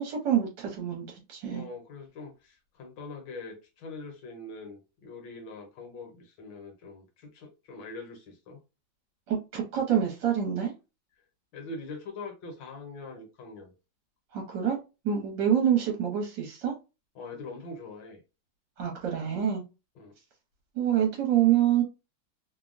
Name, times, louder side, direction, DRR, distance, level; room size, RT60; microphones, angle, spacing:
voice 1, 0.0-1.6 9.3-10.7 14.3-14.8 15.0-16.7 18.8-19.6 20.7-21.8, right 9 dB, 65° right, 1.5 m, -26 dB
voice 2, 1.5-8.6 11.5-13.7 17.2-18.2 20.0-20.1, left 3 dB, 70° left, 1.4 m, -43 dB
3.4 x 2.2 x 2.4 m
omnidirectional pair, 2.2 m